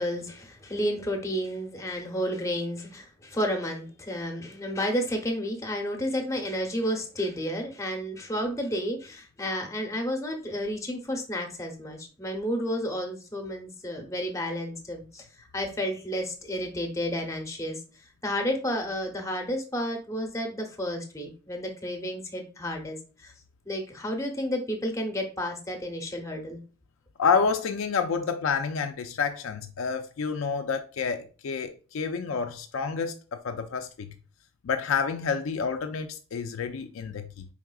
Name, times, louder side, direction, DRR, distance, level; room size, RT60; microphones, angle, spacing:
voice 1, 0.0-17.8 18.2-23.3 23.6-26.6, equal, 15° left, 0.8 m, -31 dB
voice 2, 27.2-33.9 34.6-37.5, left 5 dB, 80° left, 0.4 m, -29 dB
4.7 x 3.5 x 2.3 m
head